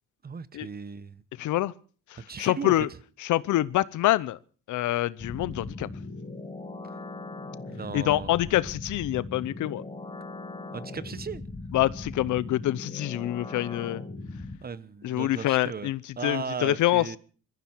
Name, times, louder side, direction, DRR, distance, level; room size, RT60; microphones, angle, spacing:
voice 1, 0.2-1.2 2.2-2.7 6.8-7.0 7.7-8.3 10.7-11.4 14.6-15.9 16.2-17.2, right 5 dB, 30° right, 1.0 m, -36 dB
voice 2, 1.4-1.7 2.1-2.9 3.2-4.4 4.7-5.9 7.9-9.8 11.7-14.0 15.0-17.1, left 15 dB, 80° left, 0.7 m, -26 dB
sound 1, 5.2-14.6, left 2 dB, 20° left, 4.4 m, -39 dB
21.5 x 14.5 x 4.6 m
cardioid pair, 90°, 30 cm